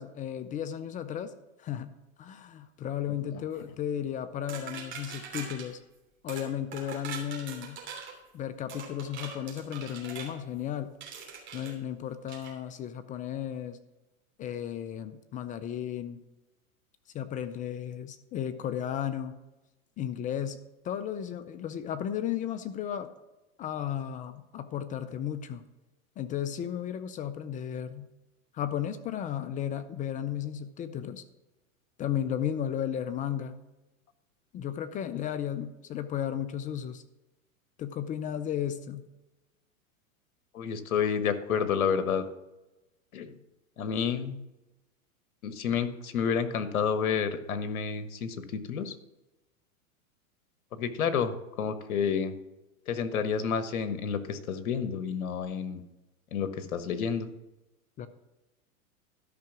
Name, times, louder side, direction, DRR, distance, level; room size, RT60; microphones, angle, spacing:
voice 1, 0.0-1.3 1.6-1.9 2.2-5.8 6.2-7.8 8.3-10.9 11.5-13.8 14.4-16.2 17.1-19.4 20.0-23.1 23.6-25.6 26.2-28.1 28.5-31.2 32.0-33.6 34.5-37.0 37.8-39.1 58.0-58.1, left 10 dB, 20° left, 12 dB, 0.4 m, -34 dB
sound 1, 4.5-5.7 6.3-6.5 6.7-8.1 8.7-10.3 11.0-11.7 12.3-12.5, right 6 dB, 25° right, 3.1 m, -42 dB
voice 2, 40.5-42.3 43.1-43.3 43.8-44.4 45.4-49.0 50.7-52.4 52.9-55.8 56.3-57.3, left 7 dB, 85° left, 11 dB, 1.3 m, -30 dB
12.5 x 5.6 x 6.1 m, 1.0 s
hypercardioid pair, 120°, 41 cm